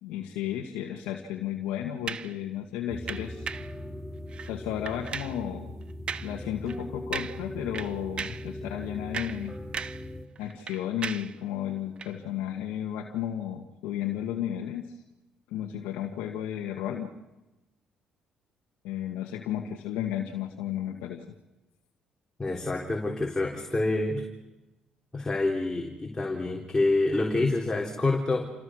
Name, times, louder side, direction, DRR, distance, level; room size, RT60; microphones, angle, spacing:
voice 1, 0.0-3.5 4.5-5.7 6.2-9.6 10.4-14.9 15.5-17.1 18.8-21.2, left 10 dB, 90° left, 1 dB, 1.7 m, -33 dB
sound 1, 2.1-2.4 3.1-3.7 4.3-4.5 4.9-5.4 6.1-6.4 6.7-6.8 7.1-7.5 7.7-8.5 8.9-10.1 10.4-11.4 12.0-12.1, right 6 dB, 45° right, 0.8 m, -36 dB
sound 2, 2.9-10.3, left 1 dB, 10° right, 3.2 m, -40 dB
voice 2, 22.4-24.3 25.1-28.5, left 2 dB, 20° left, 0 dB, 3.9 m, -27 dB
28.5 x 26.5 x 6.4 m, 1.1 s
supercardioid pair, 70°, 2 cm